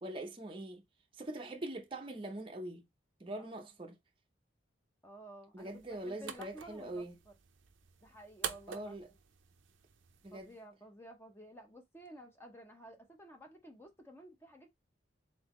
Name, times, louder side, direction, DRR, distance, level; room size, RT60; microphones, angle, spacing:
voice 1, 0.0-0.8 1.1-2.8 3.2-3.9 5.5-7.1 8.7-9.1 10.2-10.5, right 1 dB, 25° right, 0.6 m, -43 dB
voice 2, 5.0-7.3 8.0-9.1 10.3-14.7, equal, 10° left, 0.7 m, -53 dB
sound 1, 5.6-10.6, right 8 dB, 75° right, 0.6 m, -47 dB
3.9 x 3.8 x 3.0 m
head